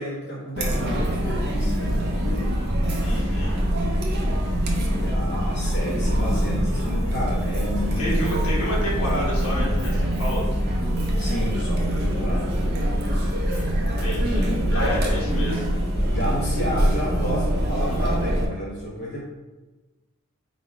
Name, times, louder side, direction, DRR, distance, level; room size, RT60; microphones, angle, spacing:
voice 1, 0.0-2.0 4.9-8.2 11.2-12.6 14.7-15.0 16.1-19.3, equal, 45° left, -6 dB, 0.8 m, -31 dB
Chatter, 0.6-18.5, equal, 45° right, 0.6 m, -24 dB
sound 1, 1.5-18.0, equal, 15° left, 0.4 m, -33 dB
voice 2, 3.0-3.5 8.0-10.5 13.9-15.7, equal, 75° left, -3 dB, 1.1 m, -30 dB
3.8 x 2.3 x 4.4 m, 1.1 s
head